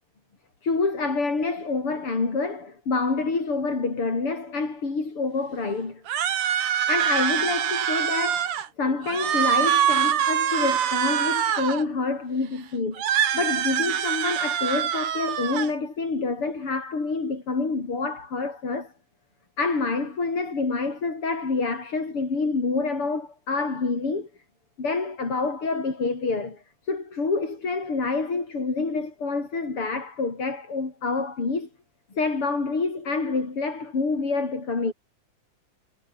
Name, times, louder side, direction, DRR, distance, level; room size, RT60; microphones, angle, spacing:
voice 1, 0.6-6.0 6.9-18.9 19.6-24.3 24.8-31.7 32.1-34.9, left 3 dB, 45° left, 5.8 m, -27 dB
sound 1, 6.1-8.7 9.0-11.8 13.0-15.7, right 9 dB, 80° right, 3.5 m, -24 dB
omnidirectional pair, 3.5 m